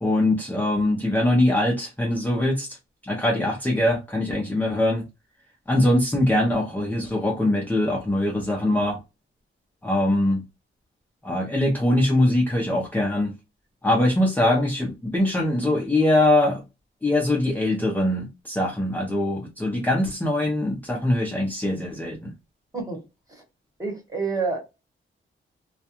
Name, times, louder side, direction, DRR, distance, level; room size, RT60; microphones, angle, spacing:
voice 1, 0.0-2.8 3.0-5.0 5.7-9.0 9.8-10.4 11.2-13.3 13.8-16.6 17.0-22.3, left 1 dB, 10° left, 0.5 m, -22 dB
voice 2, 23.8-24.6, right 4 dB, 15° right, 1.0 m, -28 dB
2.3 x 2.2 x 2.7 m
wide cardioid pair, 150°, 21 cm